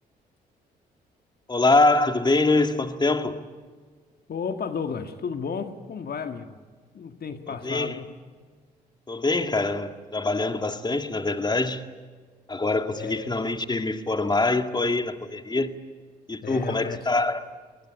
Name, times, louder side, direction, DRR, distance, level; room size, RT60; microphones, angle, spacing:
voice 1, 1.5-3.4 7.6-8.0 9.1-11.8 12.5-15.7 16.3-17.4, left 2 dB, 20° left, 8 dB, 2.0 m, -24 dB
voice 2, 4.3-6.6 6.9-8.1 13.0-13.5 16.4-17.0, left 6 dB, 50° left, 7 dB, 1.9 m, -33 dB
24.0 x 20.5 x 9.8 m, 1.5 s
hypercardioid pair, 50°, 20 cm